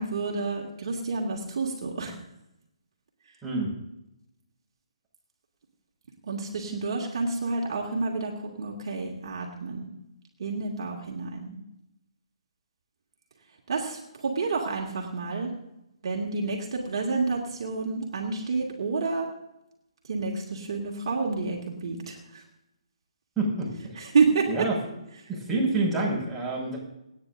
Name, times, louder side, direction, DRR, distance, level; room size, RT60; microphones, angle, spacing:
voice 1, 0.0-2.1 6.3-8.3 8.6-9.9 10.4-11.6 13.7-15.5 16.0-19.3 20.0-22.4 24.0-24.5, right 4 dB, 55° right, 0 dB, 2.3 m, -29 dB
voice 2, 23.4-24.1 24.5-24.7 25.3-26.8, right 2 dB, 5° right, -7 dB, 5.8 m, -28 dB
27.5 x 9.7 x 2.7 m, 0.87 s
figure-of-eight pair, 140°, 3 cm